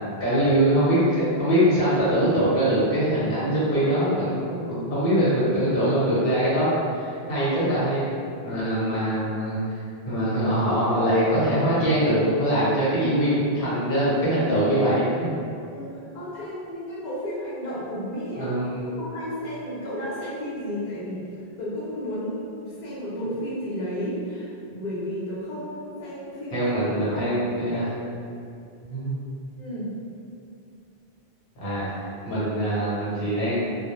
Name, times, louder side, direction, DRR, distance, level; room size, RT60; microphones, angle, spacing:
voice 1, 0.2-8.1 8.4-15.4 18.3-18.8 26.5-27.9 28.8-29.1 31.6-33.6, right 1 dB, 65° left, -9 dB, 1.1 m, -23 dB
voice 2, 15.6-18.5 19.0-21.3 21.6-26.7 27.1-27.3 27.7-27.8 29.6-29.9, equal, 50° left, -9 dB, 0.8 m, -33 dB
2.1 x 2.1 x 2.9 m, 2.5 s
omnidirectional pair, 1.0 m